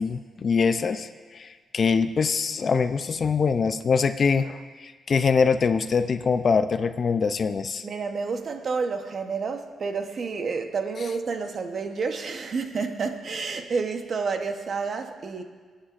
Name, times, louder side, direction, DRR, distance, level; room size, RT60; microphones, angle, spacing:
voice 1, 0.0-7.8, left 5 dB, 45° left, 11 dB, 0.5 m, -24 dB
voice 2, 7.8-15.4, right 4 dB, 50° right, 6 dB, 0.9 m, -29 dB
24.5 x 8.9 x 2.5 m, 1.5 s
cardioid pair, 90°, 0 cm